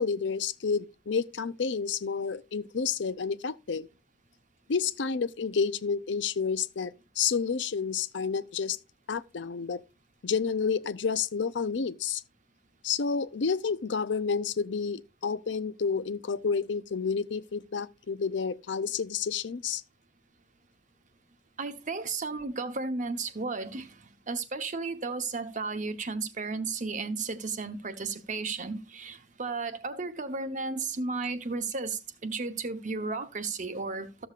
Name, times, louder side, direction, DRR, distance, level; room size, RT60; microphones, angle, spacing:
voice 1, 0.0-3.9 4.7-8.8 9.1-9.8 10.2-12.2 12.8-19.8, left 5 dB, 85° left, 0.6 m, -30 dB
voice 2, 21.6-34.3, right 4 dB, 45° right, 0.9 m, -34 dB
13.5 x 7.0 x 2.4 m
head